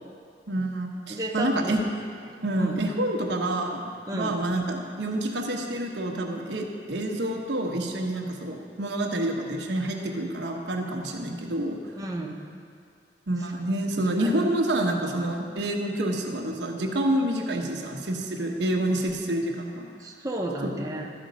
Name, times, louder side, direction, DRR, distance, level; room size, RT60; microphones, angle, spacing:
voice 1, 0.5-1.8 2.4-11.8 13.3-19.9 20.6-20.7, right 1 dB, 75° right, 1 dB, 1.0 m, -28 dB
voice 2, 1.1-1.7 2.6-2.8 4.1-4.4 8.1-8.2 12.0-12.4 14.2-14.3 20.0-21.1, right 1 dB, 20° right, -1 dB, 0.8 m, -32 dB
12.5 x 5.2 x 5.1 m, 2.3 s
head